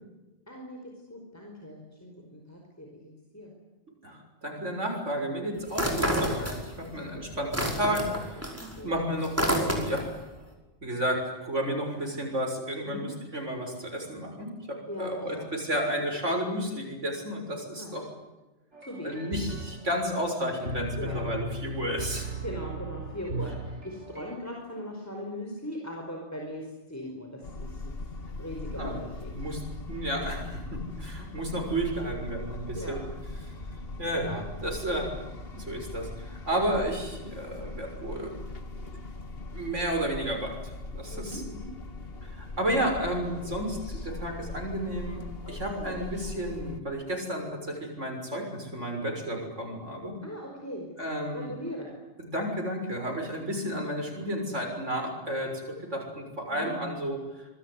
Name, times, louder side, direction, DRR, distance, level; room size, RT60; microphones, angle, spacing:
voice 1, 0.5-3.5 7.0-7.5 8.8-8.9 12.8-13.1 14.9-15.5 17.7-18.0 18.8-19.2 21.0-21.2 22.4-27.9 28.4-29.3 30.2-30.4 32.7-33.0 36.5-36.6 41.1-41.7 43.4-43.5 45.8-46.0 50.2-50.9 51.3-51.9 56.5-56.7, left 1 dB, 15° left, 0 dB, 5.0 m, -40 dB
voice 2, 4.0-8.5 8.8-10.0 10.8-18.0 19.0-22.3 28.7-29.0 29.3-29.6 29.9-33.0 33.4-33.5 34.0-35.1 35.5-38.4 38.7-38.9 39.5-41.4 42.2-45.2 45.5-50.2 51.0-51.6 52.2-57.5, right 1 dB, 85° right, 3 dB, 6.8 m, -32 dB
sound 1, 5.7-6.9 7.2-10.2, equal, 10° right, 5.3 m, -29 dB
sound 2, 18.7-24.4, right 1 dB, 70° right, 3.8 m, -37 dB
sound 3, 27.4-46.8, left 2 dB, 55° left, 1.9 m, -40 dB
27.5 x 21.5 x 9.8 m, 1.1 s
omnidirectional pair, 1.2 m